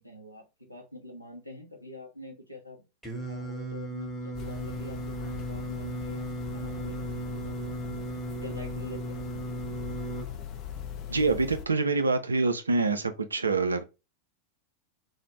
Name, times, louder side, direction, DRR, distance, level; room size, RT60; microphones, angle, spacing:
voice 1, 0.0-2.8 3.2-8.0 8.4-9.3, left 1 dB, 90° left, 0.6 m, -45 dB
Singing, 3.0-10.3, right 2 dB, ahead, 0.9 m, -36 dB
sound 1, 4.3-11.7, left 9 dB, 35° left, 0.4 m, -40 dB
voice 2, 11.1-13.8, right 3 dB, 75° right, 0.4 m, -26 dB
2.4 x 2.0 x 3.1 m
figure-of-eight pair, 90°, 0 cm